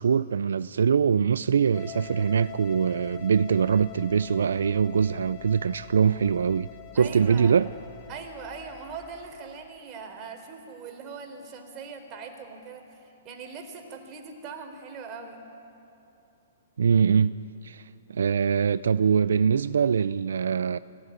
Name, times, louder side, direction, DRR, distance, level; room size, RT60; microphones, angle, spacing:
voice 1, 0.0-6.7 6.9-7.7 16.8-17.4 17.6-17.8 18.1-20.8, right 6 dB, 80° right, 0.4 m, -23 dB
sound 1, 1.7-9.3, left 11 dB, 25° left, 3.7 m, -45 dB
voice 2, 6.9-7.6 8.1-15.4, right 5 dB, 30° right, 4.2 m, -41 dB
25.0 x 17.5 x 9.8 m
hypercardioid pair, 130°, 0 cm